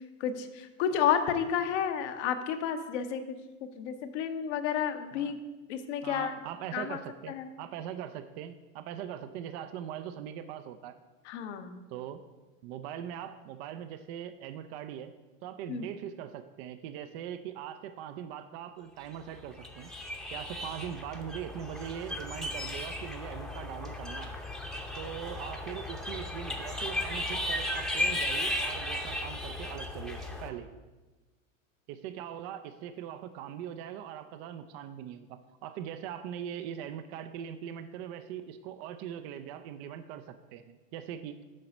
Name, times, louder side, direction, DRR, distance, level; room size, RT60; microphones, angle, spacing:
voice 1, 0.2-3.4 3.7-5.4 5.7-6.3 6.7-7.0 7.3-7.5 11.2-11.9 15.7-15.9, left 8 dB, 60° left, 7 dB, 0.9 m, -31 dB
voice 2, 6.0-11.0 11.9-12.2 12.6-15.1 15.4-19.9 20.3-24.4 25.0-30.7 31.9-41.4, right 9 dB, 50° right, 10 dB, 0.5 m, -41 dB
sound 1, 19.4-30.5, left 1 dB, ahead, 0.8 m, -35 dB
7.6 x 4.9 x 5.2 m, 1.2 s
hypercardioid pair, 95°, 40 cm